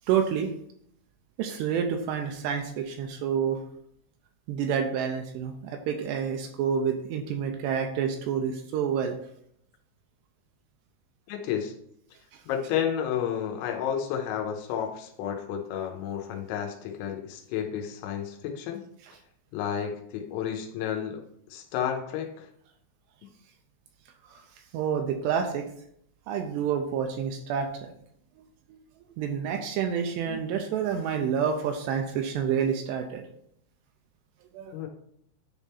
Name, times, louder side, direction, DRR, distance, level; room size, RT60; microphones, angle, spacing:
voice 1, 0.1-0.5 1.4-3.6 4.5-9.2 24.3-24.4 24.7-25.7 26.3-27.9 29.2-33.2 34.5-34.8, right 7 dB, 80° right, 4 dB, 2.6 m, -28 dB
voice 2, 11.3-11.7 12.5-18.8 19.5-21.2 21.5-22.5 34.7-34.9, left 9 dB, 90° left, 3 dB, 3.2 m, -31 dB
10.0 x 3.6 x 4.2 m, 0.70 s
omnidirectional pair, 5.2 m